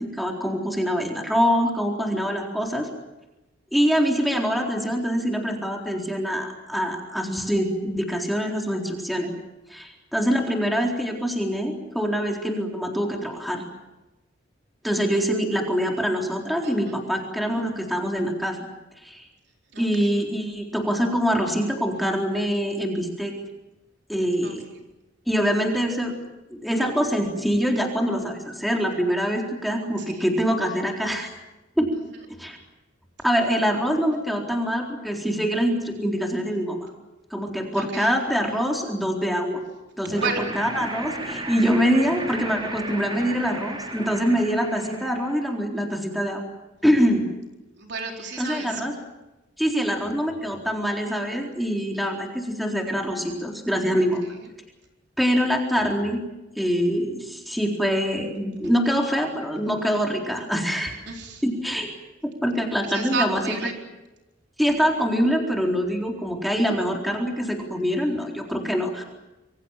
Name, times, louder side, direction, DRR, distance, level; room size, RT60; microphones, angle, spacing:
voice 1, 0.0-2.9 3.7-9.3 9.7-13.6 14.8-18.6 19.0-19.3 19.8-23.3 24.1-24.6 25.3-26.1 26.5-31.3 31.8-31.9 32.4-32.6 33.2-36.8 37.3-39.6 40.0-40.3 40.6-46.4 46.8-47.2 48.4-48.9 49.6-54.2 55.2-56.2 56.6-60.9 61.4-61.9 62.2-63.4 64.6-69.0, equal, ahead, 0 dB, 4.0 m, -24 dB
voice 2, 16.6-17.0 19.7-20.1 24.4-24.9 30.0-30.2 37.7-38.1 40.2-40.5 47.8-48.8 54.2-54.5 61.1-61.4 62.8-63.7, right 4 dB, 60° right, 2 dB, 4.3 m, -32 dB
sound 1, 40.1-45.5, right 2 dB, 25° right, 4.2 m, -35 dB
27.0 x 24.5 x 7.5 m, 1.0 s
head